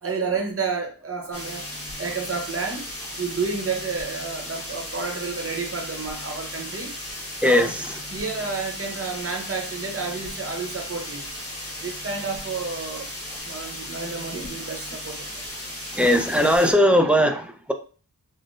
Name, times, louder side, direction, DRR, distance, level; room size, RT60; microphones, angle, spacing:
voice 1, 0.0-1.7 2.0-2.9 3.2-6.9 7.4-7.7 8.1-11.3 11.8-13.1 13.4-15.4, right 4 dB, 40° right, 0.9 m, -30 dB
sound 1, 1.3-16.7, left 1 dB, 40° left, 1.2 m, -36 dB
voice 2, 15.9-17.7, equal, 5° right, 0.5 m, -19 dB
3.6 x 2.1 x 2.5 m
cardioid pair, 40°, 35 cm